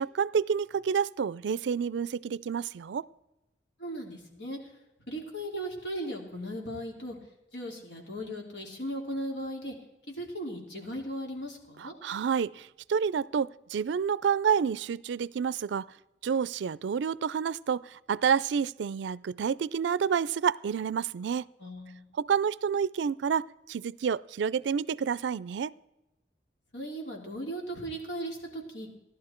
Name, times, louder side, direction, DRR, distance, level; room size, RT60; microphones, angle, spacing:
voice 1, 0.0-3.1 11.8-15.9 16.2-21.4 22.2-25.7, right 7 dB, 85° right, 21 dB, 0.4 m, -29 dB
voice 2, 3.8-4.6 5.1-7.2 7.5-9.7 10.1-11.9 21.6-22.1 26.7-28.9, equal, 85° left, 0 dB, 3.1 m, -37 dB
16.0 x 11.5 x 4.4 m, 0.97 s
head